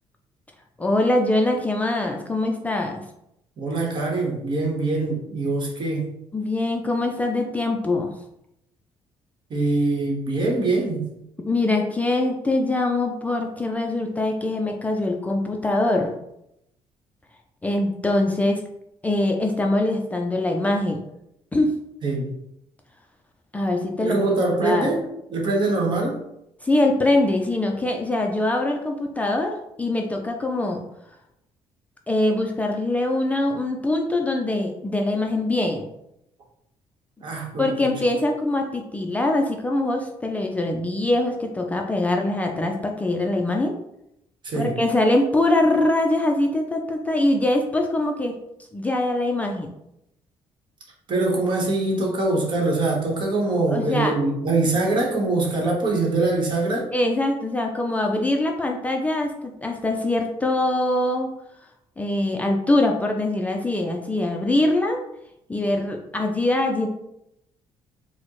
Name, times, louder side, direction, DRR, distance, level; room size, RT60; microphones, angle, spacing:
voice 1, 0.8-3.0 6.3-8.1 11.5-16.1 17.6-18.6 19.0-21.0 21.5-21.7 23.5-24.2 24.6-24.9 26.6-30.8 32.1-35.9 37.6-43.7 44.5-48.3 48.7-49.7 53.7-54.1 56.9-61.3 62.0-65.0 65.5-66.9, left 2 dB, 15° left, 1 dB, 0.3 m, -23 dB
voice 2, 3.6-6.1 9.5-11.1 22.0-22.3 24.0-25.0 25.3-26.2 37.2-37.9 44.4-44.7 51.1-56.9, right 2 dB, 50° right, -2 dB, 1.0 m, -23 dB
4.1 x 2.1 x 3.0 m, 0.82 s
cardioid pair, 115°, 11 cm